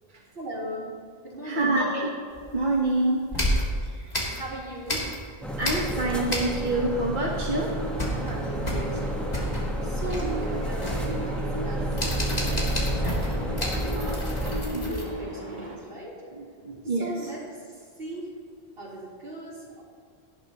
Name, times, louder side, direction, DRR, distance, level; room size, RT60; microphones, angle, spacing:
voice 1, 0.4-0.9 1.2-1.8 4.4-5.1 8.0-12.7 13.0-16.2 16.8-18.3 18.8-19.8, right 1 dB, 70° right, -6 dB, 3.6 m, -38 dB
voice 2, 1.4-2.1 2.5-3.2 5.6-8.2 12.3-12.5 14.7-14.9 16.3-17.1, right 2 dB, 50° right, -2 dB, 1.2 m, -27 dB
sound 1, 2.4-2.9 3.3-5.3 5.6-6.9 7.2-7.3 7.6-15.0, equal, 40° left, 2.4 m, -30 dB
sound 2, 5.4-14.6, right 1 dB, ahead, 1.0 m, -31 dB
sound 3, 7.7-15.8, right 1 dB, 35° right, 2.2 m, -37 dB
17.5 x 11.0 x 2.9 m, 2.1 s
omnidirectional pair, 1.0 m